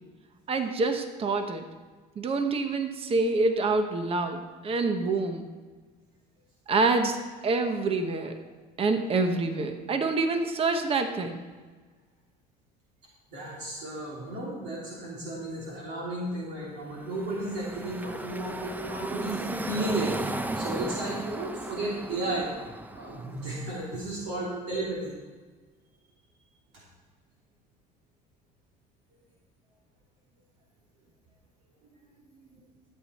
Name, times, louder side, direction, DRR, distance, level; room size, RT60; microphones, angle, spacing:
voice 1, 0.5-1.6 2.2-5.5 6.7-7.2 7.4-8.4 8.8-11.4, right 3 dB, 30° right, 7 dB, 1.1 m, -26 dB
voice 2, 13.3-22.5 22.9-25.1 32.3-32.5, right 1 dB, 70° right, -5 dB, 3.0 m, -33 dB
Car passing by / Traffic noise roadway noise, 16.9-23.8, right 2 dB, 10° right, 0.5 m, -36 dB
13.5 x 8.5 x 4.3 m, 1.4 s
cardioid pair, 110°, 18 cm